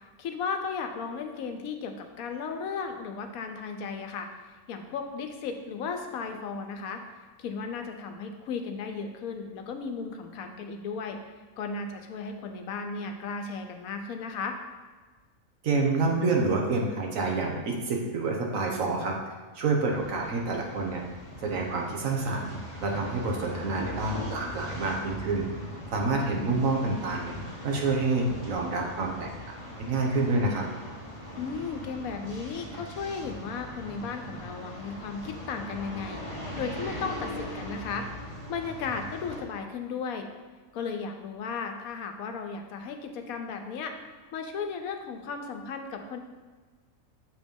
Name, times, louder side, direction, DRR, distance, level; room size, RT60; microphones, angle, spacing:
voice 1, 0.2-4.3 4.7-7.0 7.4-11.2 11.6-14.6 31.4-36.2 36.6-38.1 38.5-40.3 40.7-44.0 44.3-46.2, left 5 dB, 85° left, 5 dB, 1.1 m, -35 dB
voice 2, 15.6-21.0 21.4-22.5 22.8-25.5 25.9-27.3 27.6-29.3 29.6-30.6, right 3 dB, 70° right, 0 dB, 1.3 m, -28 dB
sound 1, 19.9-39.4, equal, 25° right, 1.4 m, -40 dB
7.0 x 3.1 x 5.2 m, 1.3 s
omnidirectional pair, 1.5 m